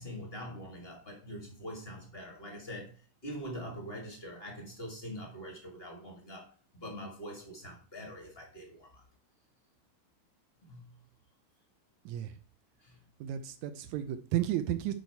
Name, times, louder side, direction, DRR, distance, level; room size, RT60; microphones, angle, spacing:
voice 1, 0.0-3.0 3.2-6.5 6.7-9.0 10.6-11.0 12.8-13.0, equal, 80° left, 0.5 m, -44 dB
voice 2, 13.2-14.9, right 11 dB, 90° right, 1.7 m, -33 dB
10.5 x 4.8 x 4.5 m
omnidirectional pair, 4.1 m